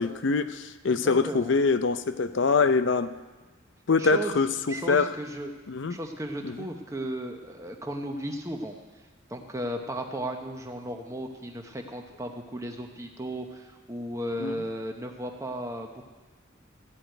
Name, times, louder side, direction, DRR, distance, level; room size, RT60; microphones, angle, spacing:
voice 1, 0.0-3.1 3.9-4.5 4.9-5.1 5.7-6.0 6.4-6.6 14.4-14.5, left 4 dB, 65° left, 12 dB, 0.5 m, -24 dB
voice 2, 0.9-1.6 4.0-4.3 4.7-5.5 5.9-8.8 9.3-16.0, right 1 dB, 15° right, 4 dB, 0.9 m, -35 dB
14.5 x 4.9 x 9.1 m, 1.3 s
head